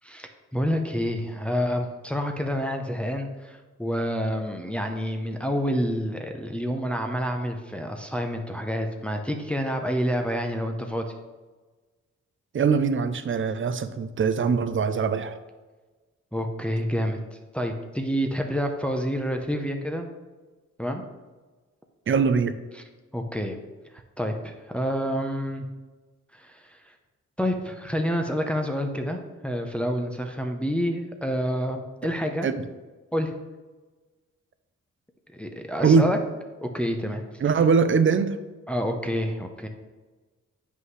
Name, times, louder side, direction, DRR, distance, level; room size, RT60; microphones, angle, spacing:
voice 1, 0.0-11.1 16.3-20.1 20.8-21.0 23.1-23.6 24.2-25.7 26.4-26.6 27.4-32.5 33.1-33.3 35.3-36.2 36.6-37.2 38.7-39.7, equal, 5° left, 3 dB, 0.7 m, -28 dB
voice 2, 12.5-15.3 22.1-22.5 32.4-32.6 35.8-36.1 37.4-38.4, right 5 dB, 45° right, 12 dB, 0.6 m, -22 dB
7.8 x 5.5 x 3.2 m, 1.3 s
cardioid pair, 80°, 29 cm